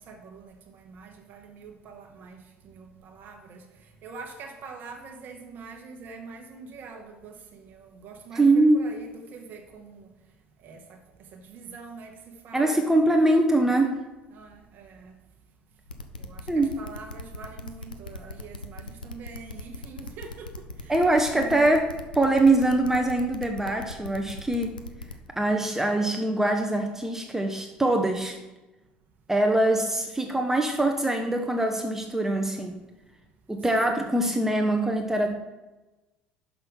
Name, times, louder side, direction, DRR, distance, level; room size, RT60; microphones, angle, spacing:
voice 1, 0.0-13.2 14.3-15.2 16.1-21.0 21.3-21.7 33.7-33.9, right 4 dB, 45° right, 3 dB, 1.0 m, -45 dB
voice 2, 8.4-8.8 12.5-14.0 16.5-16.7 20.9-21.9 22.1-24.7 25.4-28.4 29.3-32.8 33.5-35.3, right 2 dB, 10° right, 3 dB, 0.7 m, -23 dB
sound 1, 15.9-25.3, left 2 dB, 85° left, 0.5 m, -39 dB
6.0 x 5.6 x 5.4 m, 1.1 s
figure-of-eight pair, 60°, 5 cm